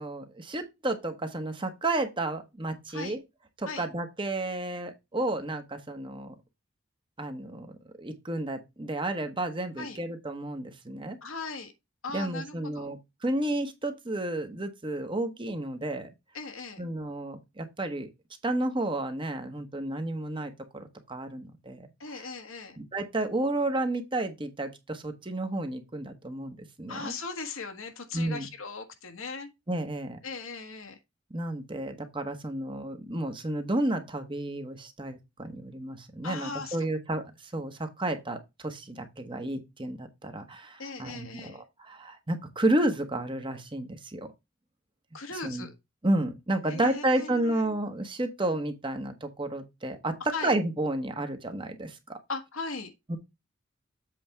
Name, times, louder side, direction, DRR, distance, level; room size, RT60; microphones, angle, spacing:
voice 1, 0.0-3.2 3.6-6.3 7.2-11.2 12.1-16.1 16.8-18.1 18.4-22.2 22.8-27.1 28.1-28.5 29.7-30.2 31.3-44.3 45.4-45.7 46.0-50.2 50.4-52.2 53.1-53.2, right 1 dB, 25° right, 1.1 m, -31 dB
voice 2, 11.2-11.7 12.0-12.9 16.3-16.8 22.0-22.8 26.9-29.5 30.2-31.0 36.2-36.9 40.8-41.6 45.1-45.7 46.7-47.7 50.3-50.5 52.3-52.9, left 4 dB, 70° left, 1.5 m, -38 dB
7.9 x 4.1 x 4.4 m
head